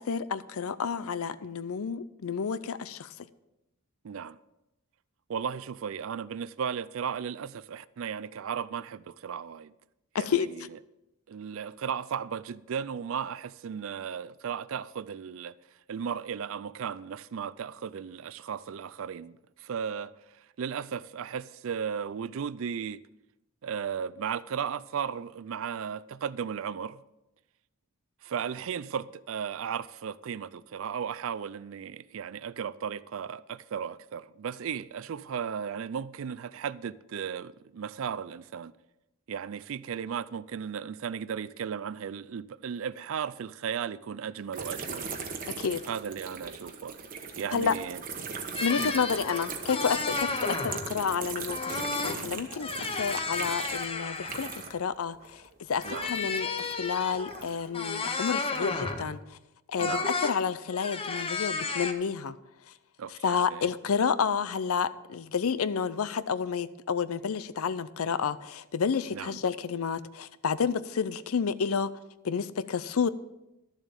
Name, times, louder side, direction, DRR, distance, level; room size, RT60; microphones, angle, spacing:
voice 1, 0.1-3.1 10.1-10.5 45.6-45.8 47.5-47.7 48.6-52.7 53.0-55.4 55.7-59.2 59.7-62.3 63.2-71.9 72.2-73.1, left 6 dB, 70° left, 0.5 m, -30 dB
voice 2, 4.0-4.4 5.3-9.7 10.2-10.8 11.3-23.0 23.6-27.0 28.2-38.7 39.3-45.1 45.9-47.0 47.4-48.0 48.8-48.9 50.1-50.2 55.8-56.1 59.8-60.1 63.0-63.7 69.1-69.4, right 7 dB, 60° right, 0.4 m, -35 dB
sound 1, 44.5-54.9 55.2-57.7 58.2-59.0, right 5 dB, 40° right, 1.1 m, -39 dB
sound 2, 48.6-51.0 51.5-52.2 52.5-54.7 55.8-59.1 59.8-60.4 60.7-61.9, left 4 dB, 25° left, 0.7 m, -33 dB
12.5 x 7.2 x 5.2 m
head